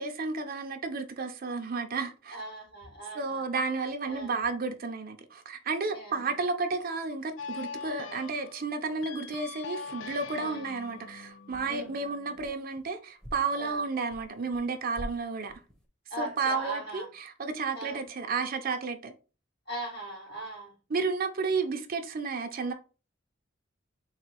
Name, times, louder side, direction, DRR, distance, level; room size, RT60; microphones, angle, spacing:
voice 1, 0.0-2.4 3.1-15.5 16.2-19.1 20.9-22.7, right 4 dB, 50° right, 0.6 m, -32 dB
voice 2, 2.3-3.4 4.1-4.3 5.9-6.4 7.8-8.2 10.4-10.7 11.6-12.2 13.6-13.8 16.1-17.1 17.7-18.1 19.7-20.7, right 2 dB, 55° left, 2.5 m, -40 dB
sound 1, 7.4-12.4, left 6 dB, 85° left, 0.4 m, -43 dB
sound 2, 10.8-11.1 11.5-12.9 13.2-14.6 14.9-15.9, equal, 5° left, 0.8 m, -46 dB
4.0 x 2.2 x 4.5 m
head